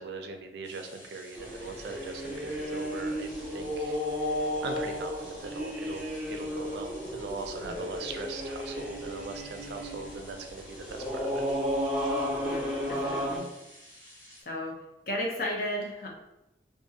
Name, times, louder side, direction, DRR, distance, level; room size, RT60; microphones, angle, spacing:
voice 1, 0.0-11.4, right 3 dB, 75° right, 5 dB, 0.3 m, -40 dB
sound 1, 0.6-14.4, left 1 dB, 70° left, 1.2 m, -52 dB
sound 2, 1.4-13.4, equal, ahead, 0.5 m, -33 dB
voice 2, 12.4-13.5 14.5-14.8 15.1-16.1, left 1 dB, 50° left, -1 dB, 0.5 m, -34 dB
2.5 x 2.3 x 2.7 m, 0.92 s
head